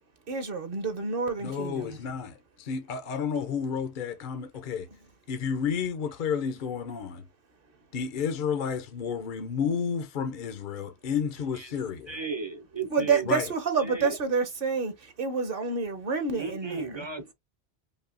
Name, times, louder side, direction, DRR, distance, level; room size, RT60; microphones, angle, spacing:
voice 1, 0.3-2.0 4.9-5.0 12.9-17.1, right 5 dB, 60° right, 1.1 m, -28 dB
voice 2, 1.4-4.9 5.3-7.3 7.9-12.1 13.3-13.4, left 6 dB, 55° left, 0.7 m, -31 dB
voice 3, 12.1-13.3 13.8-14.2 16.3-17.3, right 4 dB, 35° right, 0.5 m, -35 dB
5.2 x 2.2 x 2.5 m
omnidirectional pair, 1.1 m